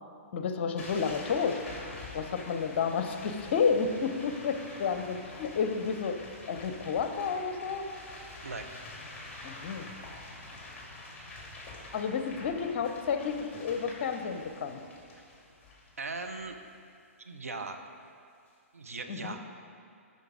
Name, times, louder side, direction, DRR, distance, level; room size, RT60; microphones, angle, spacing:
voice 1, 0.3-1.6 2.1-6.2 6.5-7.9 9.4-9.9 11.9-14.8 19.1-19.4, left 6 dB, 50° left, 7 dB, 0.8 m, -31 dB
sound 1, 0.8-16.7, left 2 dB, 15° left, 2.3 m, -46 dB
voice 2, 8.4-8.8 16.0-16.6 17.2-17.8 18.7-19.5, right 3 dB, 80° right, 4 dB, 0.9 m, -39 dB
12.5 x 5.6 x 5.0 m, 2.5 s
figure-of-eight pair, 120°, 8 cm